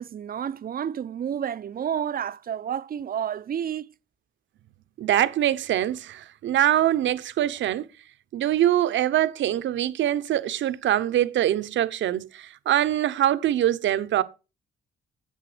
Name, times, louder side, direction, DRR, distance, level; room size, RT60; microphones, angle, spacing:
voice 1, 0.0-3.9, right 9 dB, 50° right, 0.6 m, -30 dB
voice 2, 5.0-7.9 8.3-14.2, right 12 dB, 70° right, 0.9 m, -23 dB
10.0 x 7.5 x 5.0 m
cardioid pair, 90°, 20 cm